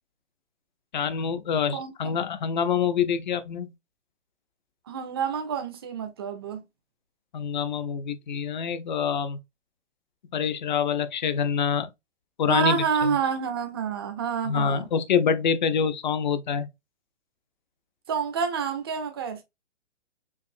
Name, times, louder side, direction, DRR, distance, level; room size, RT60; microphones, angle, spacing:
voice 1, 0.9-3.7 7.3-9.4 10.3-11.9 12.4-13.2 14.4-16.7, left 7 dB, 40° left, 0.4 m, -26 dB
voice 2, 1.7-2.1 4.9-6.6 12.5-14.9 18.1-19.4, right 6 dB, 20° right, 0.4 m, -28 dB
4.7 x 2.5 x 2.6 m
hypercardioid pair, 145°, 36 cm